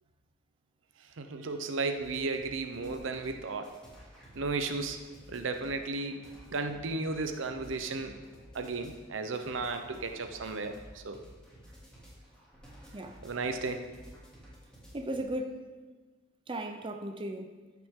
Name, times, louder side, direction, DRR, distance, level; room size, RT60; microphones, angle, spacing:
voice 1, 1.2-3.8 4.3-5.0 5.3-8.1 8.5-11.2 13.2-13.9, right 3 dB, 85° right, 0.7 m, -34 dB
sound 1, 2.0-15.2, equal, 5° left, 2.6 m, -53 dB
voice 2, 14.9-15.6 16.5-17.5, right 1 dB, 25° right, 0.6 m, -36 dB
13.5 x 5.9 x 3.8 m
head